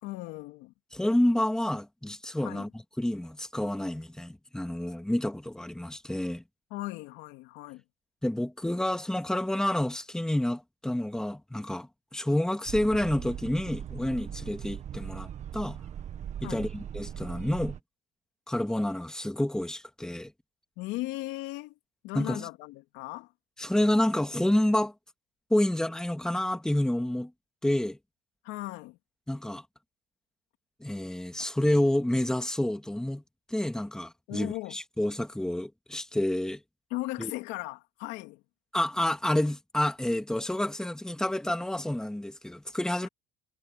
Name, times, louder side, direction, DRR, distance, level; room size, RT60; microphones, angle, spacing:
voice 1, 0.0-0.7 2.4-2.7 6.7-7.8 16.4-16.7 20.8-21.8 22.0-23.3 28.4-29.0 34.3-34.8 36.9-38.4 43.0-43.1, left 19 dB, 80° left, 2.8 m, -37 dB
voice 2, 0.9-2.7 3.0-6.4 8.2-15.8 16.4-17.8 18.5-20.3 22.1-22.5 23.6-24.9 25.5-27.3 27.6-28.0 29.3-29.6 30.8-33.2 33.5-36.6 37.2-37.3 38.7-43.1, left 1 dB, 5° left, 2.0 m, -29 dB
sound 1, 12.7-17.8, right 9 dB, 40° right, 1.4 m, -39 dB
cardioid pair, 130°, 18 cm